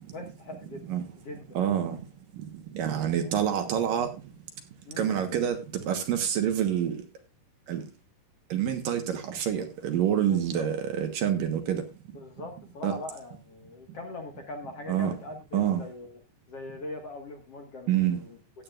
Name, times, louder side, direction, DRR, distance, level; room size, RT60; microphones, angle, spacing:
voice 1, 0.1-0.9 1.2-1.4 3.2-3.3 4.9-5.1 10.3-10.7 12.1-16.2 16.5-18.4, left 2 dB, 50° left, 2.1 m, -41 dB
voice 2, 1.5-2.0 2.7-4.1 5.0-7.0 7.7-7.8 8.5-11.8 12.8-12.9 14.9-15.1 15.5-15.8 17.9-18.2, right 9 dB, 65° right, 2.8 m, -27 dB
16.0 x 9.8 x 2.5 m
omnidirectional pair, 4.5 m